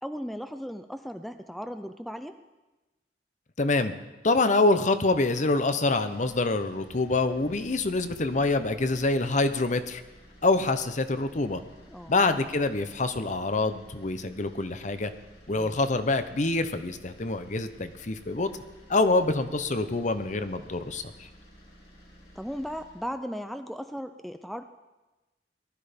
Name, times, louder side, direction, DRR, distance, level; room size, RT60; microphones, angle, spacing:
voice 1, 0.0-2.4 11.9-12.2 22.4-24.6, equal, ahead, 9 dB, 0.5 m, -37 dB
voice 2, 3.6-3.9 4.2-10.0 10.4-11.6 12.1-15.1 15.5-18.5 18.9-21.0, left 3 dB, 45° left, 10 dB, 0.9 m, -26 dB
sound 1, 5.2-23.1, equal, 65° left, 4.8 m, -53 dB
18.5 x 12.5 x 5.2 m, 1.1 s
head